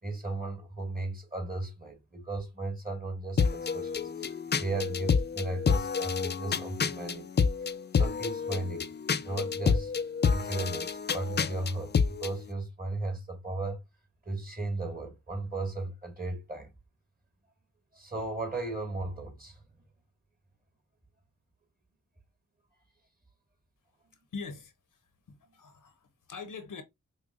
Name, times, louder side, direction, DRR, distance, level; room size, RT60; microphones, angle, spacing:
voice 1, 0.0-8.9 9.2-9.9 10.3-13.8 14.3-16.7 17.9-19.6, right 2 dB, 25° right, 1.7 m, -36 dB
sound 1, 3.4-12.3, left 6 dB, 35° left, 0.4 m, -29 dB
voice 2, 24.3-26.8, left 4 dB, 75° left, 0.8 m, -43 dB
5.1 x 2.2 x 2.5 m
cardioid pair, 45°, 32 cm